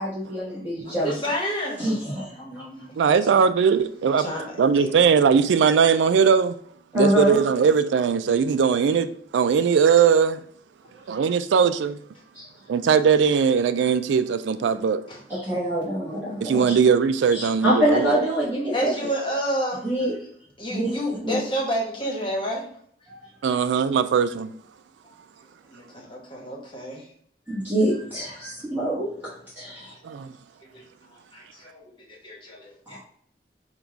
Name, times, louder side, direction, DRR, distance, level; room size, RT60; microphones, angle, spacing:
voice 1, 0.0-1.1 1.8-2.6 6.9-7.4 12.3-12.5 15.3-16.8 17.3-18.9 19.8-20.1 20.7-21.0 21.2-21.4 27.5-29.1 29.6-30.0 32.9-33.0, equal, 10° right, 1.1 m, -25 dB
voice 2, 0.8-1.9 2.2-2.9 3.3-3.4 4.2-5.1 11.1-11.2 15.1-15.2 18.7-19.9 20.6-22.7 25.7-27.1 30.6-33.0, equal, 30° left, 1.1 m, -30 dB
voice 3, 3.0-4.3 4.6-6.6 6.9-10.4 11.1-12.0 12.7-15.0 16.4-18.2 23.4-24.5 30.0-30.3, right 6 dB, 85° right, 0.3 m, -20 dB
3.9 x 2.3 x 4.5 m
head